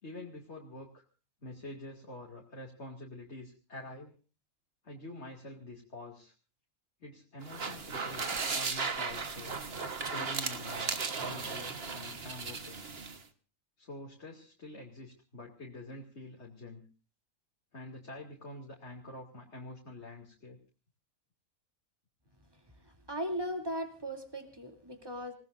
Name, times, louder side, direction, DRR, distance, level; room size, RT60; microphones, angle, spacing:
voice 1, 0.0-1.0 1.4-4.2 4.8-6.3 7.0-9.6 10.1-12.8 13.8-16.8 17.7-20.6, left 2 dB, 50° left, -1 dB, 2.9 m, -46 dB
sound 1, 7.4-13.2, right 4 dB, 45° right, 1.6 m, -36 dB
voice 2, 22.9-25.3, equal, 15° right, 4 dB, 3.1 m, -38 dB
27.5 x 18.5 x 2.6 m, 0.35 s
omnidirectional pair, 1.5 m